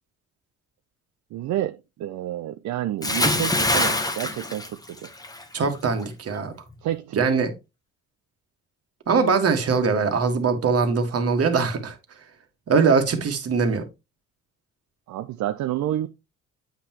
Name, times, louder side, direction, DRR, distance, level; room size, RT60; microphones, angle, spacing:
voice 1, 1.3-5.1 6.8-7.2 15.1-16.1, right 13 dB, 70° right, 0.5 m, -29 dB
Bathtub (filling or washing) / Splash splatter, 3.0-5.4 5.8-6.0, left 2 dB, 10° left, 1.0 m, -24 dB
voice 2, 5.5-6.5 7.2-7.5 9.1-11.9 12.7-13.8, right 5 dB, 50° right, 1.6 m, -21 dB
8.2 x 5.8 x 2.9 m
cardioid pair, 90°, 30 cm